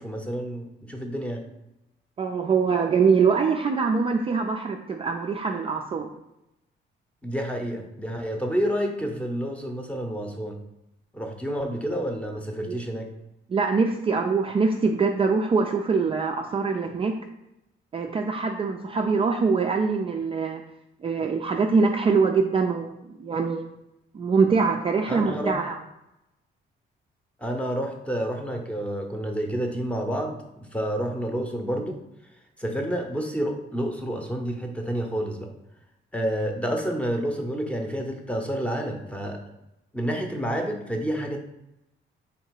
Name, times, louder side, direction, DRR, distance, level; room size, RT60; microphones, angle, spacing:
voice 1, 0.0-1.4 7.2-10.6 11.1-13.1 25.1-25.5 27.4-32.0 32.6-35.5 36.1-39.4 39.9-41.4, equal, 5° left, 3 dB, 0.7 m, -29 dB
voice 2, 2.2-6.1 12.7-12.8 13.5-17.2 17.9-20.6 21.0-23.7 24.1-25.8, right 4 dB, 30° right, 3 dB, 0.3 m, -23 dB
3.7 x 2.8 x 4.6 m, 0.87 s
cardioid pair, 90°, 20 cm